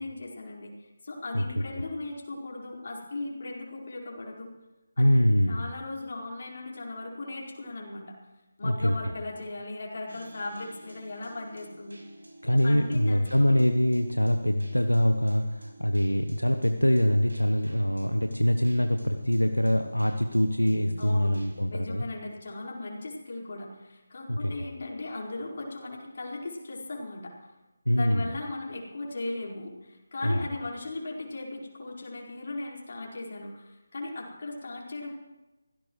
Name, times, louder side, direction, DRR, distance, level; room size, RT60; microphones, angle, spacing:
voice 1, 0.0-4.5 5.0-5.1 5.5-8.1 8.6-12.0 12.4-13.6 21.0-21.3 21.7-27.5 27.9-35.1, left 2 dB, 45° left, -2 dB, 4.8 m, -38 dB
voice 2, 5.0-5.6 8.6-9.1 12.4-22.0 24.3-24.5 27.9-28.3 30.2-30.5, left 1 dB, 90° left, 6 dB, 1.1 m, -24 dB
sound 1, 10.1-21.7, equal, 70° right, 5.5 m, -47 dB
24.0 x 17.0 x 3.2 m, 1.1 s
figure-of-eight pair, 155°, 0 cm